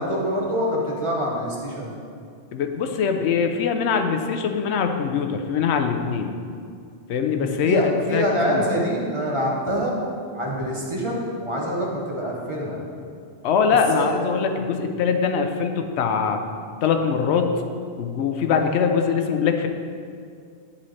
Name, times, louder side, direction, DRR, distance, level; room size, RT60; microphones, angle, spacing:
voice 1, 0.0-1.9 7.3-9.9 10.3-12.8 13.9-14.2 18.5-18.7, equal, 30° right, -3 dB, 0.9 m, -25 dB
voice 2, 2.5-6.3 7.1-8.6 13.4-16.4 16.8-17.5 18.0-19.7, left 6 dB, 85° left, 6 dB, 0.9 m, -22 dB
10.0 x 4.2 x 3.2 m, 2.3 s
omnidirectional pair, 1.1 m